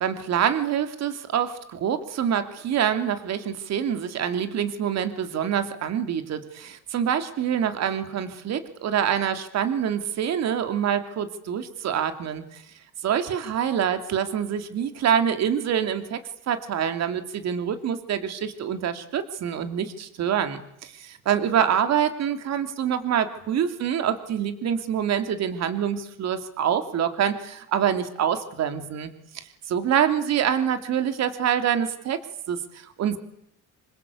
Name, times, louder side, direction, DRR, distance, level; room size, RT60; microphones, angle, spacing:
voice 1, 0.0-12.6 13.0-16.2 16.5-32.2 32.5-33.2, right 8 dB, 55° right, 10 dB, 2.7 m, -26 dB
27.0 x 25.5 x 8.4 m, 0.74 s
cardioid pair, 145°, 32 cm